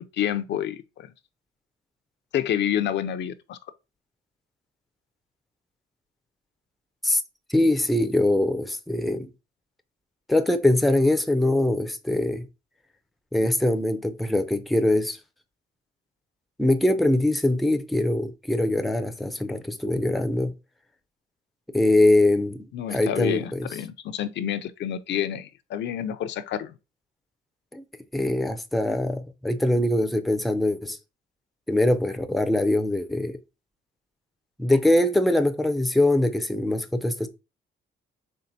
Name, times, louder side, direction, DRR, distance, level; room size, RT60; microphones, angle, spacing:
voice 1, 0.1-1.1 2.3-3.6 22.7-26.7, left 10 dB, 65° left, 0.4 m, -28 dB
voice 2, 7.5-9.3 10.3-12.5 13.3-15.2 16.6-20.5 21.7-23.7 27.7-27.8 28.1-31.0 31.7-33.4 34.6-37.3, left 1 dB, ahead, 0.4 m, -23 dB
4.4 x 3.3 x 2.6 m
cardioid pair, 90°, 20 cm